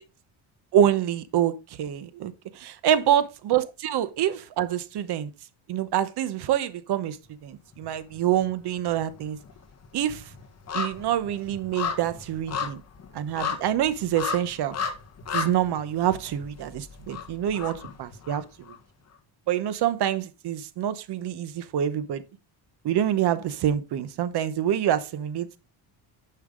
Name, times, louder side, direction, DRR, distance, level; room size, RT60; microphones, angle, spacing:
voice 1, 0.7-5.3 5.7-7.2 7.4-9.4 9.9-10.3 10.7-12.8 13.1-14.8 15.3-18.4 19.5-22.2 22.8-25.7, right 10 dB, 55° right, 1.0 m, -26 dB
sound 1, 7.7-8.5 8.8-18.8 19.1-19.2, left 6 dB, 30° left, 1.4 m, -35 dB
9.7 x 5.7 x 3.8 m
cardioid pair, 145°, 48 cm